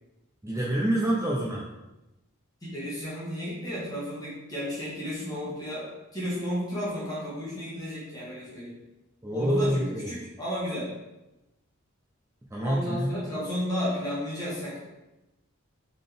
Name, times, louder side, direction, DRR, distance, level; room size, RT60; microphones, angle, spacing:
voice 1, 0.4-1.6 9.2-10.1 12.5-13.1, right 1 dB, 15° right, -4 dB, 0.5 m, -27 dB
voice 2, 2.6-5.9 6.1-8.7 9.3-10.9 12.6-14.8, equal, 15° left, -8 dB, 1.4 m, -33 dB
3.9 x 3.9 x 3.4 m, 0.98 s
head